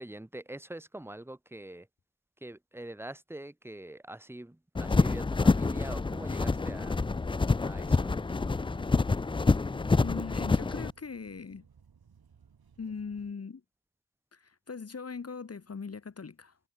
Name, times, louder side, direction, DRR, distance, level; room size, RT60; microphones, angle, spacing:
voice 1, 0.0-1.9 2.4-7.0 7.6-8.2, right 1 dB, 5° right, 1.1 m, -44 dB
sound 1, 4.7-10.9, left 3 dB, 15° left, 0.3 m, -27 dB
sound 2, 7.4-13.3, right 6 dB, 80° right, 5.2 m, -60 dB
voice 2, 10.0-11.7 12.8-13.6 14.3-16.6, left 5 dB, 40° left, 1.3 m, -40 dB
wide cardioid pair, 90°, 37 cm